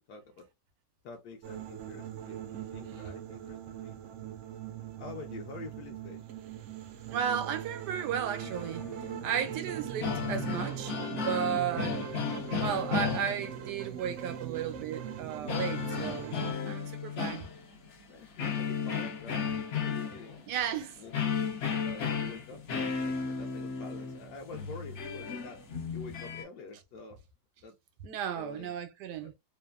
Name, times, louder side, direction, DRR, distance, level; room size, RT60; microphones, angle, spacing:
voice 1, 0.1-0.5 1.0-2.4 2.7-4.0 5.0-6.2 18.1-20.4 21.0-21.1 21.8-25.6 25.9-27.2 27.6-27.8 28.4-28.7 29.2-29.3, left 4 dB, 75° left, 1.1 m, -47 dB
sound 1, 1.4-16.5, right 9 dB, 70° right, 0.7 m, -41 dB
voice 2, 7.1-12.1 12.6-17.4 20.5-21.0 28.0-29.3, right 8 dB, 90° right, 1.2 m, -34 dB
sound 2, 8.4-9.5 9.8-13.9 15.5-18.0 18.4-26.4, left 6 dB, 60° left, 0.9 m, -34 dB
3.2 x 2.0 x 2.2 m
omnidirectional pair, 1.7 m